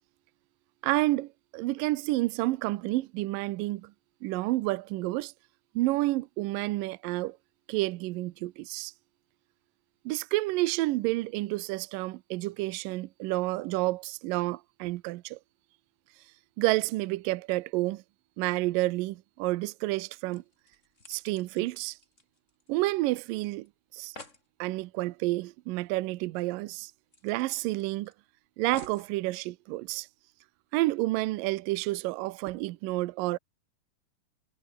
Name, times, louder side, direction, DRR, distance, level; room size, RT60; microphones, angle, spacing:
voice 1, 0.8-3.9 4.2-5.3 5.8-7.4 7.7-8.9 10.1-15.4 16.6-18.0 18.4-20.4 21.1-22.0 22.7-23.7 23.9-24.1 24.6-26.9 27.2-28.1 28.6-30.1 30.7-33.4, right 19 dB, 75° right, 2.2 m, -30 dB
sound 1, 20.3-23.0 23.2-23.3 23.6-23.7 23.9-24.5 26.0-26.1 26.4-26.5 27.1-28.1 28.7-29.1 29.9-30.0, left 2 dB, 20° left, 3.9 m, -51 dB
omnidirectional pair, 4.4 m